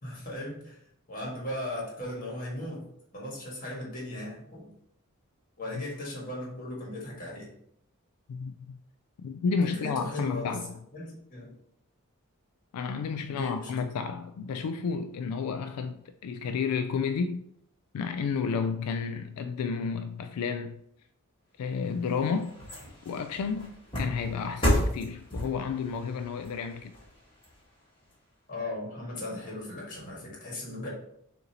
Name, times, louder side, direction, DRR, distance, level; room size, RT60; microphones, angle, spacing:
voice 1, 0.0-0.8 1.1-2.8 3.1-4.7 5.6-7.5 9.6-10.5 10.9-11.5 13.2-13.7 28.5-30.9, left 1 dB, 40° left, 1.5 m, -37 dB
voice 2, 8.3-8.8 9.2-10.8 12.7-17.4 17.9-20.8 21.6-22.5 23.1-26.9, left 5 dB, 85° left, 0.3 m, -31 dB
sound 1, 21.6-28.1 28.6-28.7, equal, 20° left, 1.5 m, -33 dB
6.6 x 2.6 x 2.8 m
head